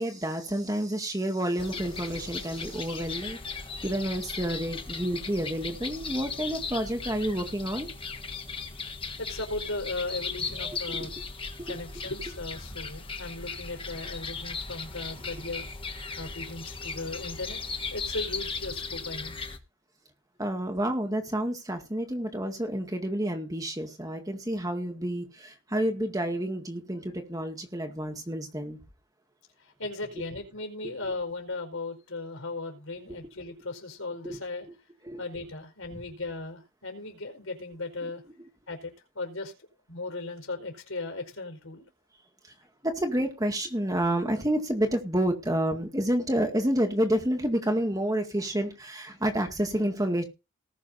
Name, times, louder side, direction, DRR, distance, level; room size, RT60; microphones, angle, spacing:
voice 1, 0.0-7.9 10.6-11.1 11.6-11.8 20.4-28.8 30.8-30.9 34.2-34.4 35.0-35.2 42.8-50.2, right 1 dB, 15° right, 1.9 m, -29 dB
sound 1, 1.6-19.6, left 4 dB, 25° left, 1.5 m, -37 dB
voice 2, 9.2-11.2 11.7-15.7 16.2-17.6 17.9-19.4 29.8-34.7 35.2-38.2 38.7-39.5 39.9-41.9, left 2 dB, 70° left, 4.9 m, -37 dB
19.5 x 6.5 x 4.2 m
head